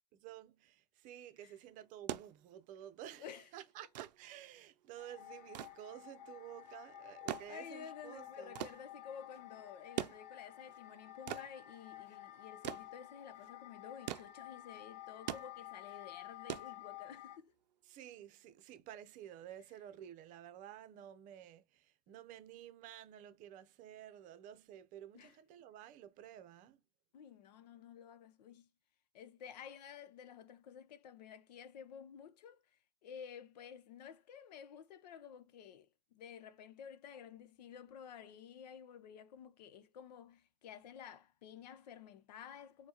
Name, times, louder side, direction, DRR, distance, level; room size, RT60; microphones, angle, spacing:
voice 1, 0.1-8.6 17.9-26.8, right 11 dB, 40° right, 0.7 m, -52 dB
sound 1, 1.8-17.4 18.6-18.7, right 12 dB, 85° right, 0.5 m, -46 dB
sound 2, 5.0-17.4, left 14 dB, 40° left, 0.7 m, -52 dB
voice 2, 7.5-17.5 25.1-25.4 27.1-28.7 29.1-42.9, left 8 dB, 80° left, 0.7 m, -52 dB
4.5 x 2.2 x 2.9 m
supercardioid pair, 135°, 21 cm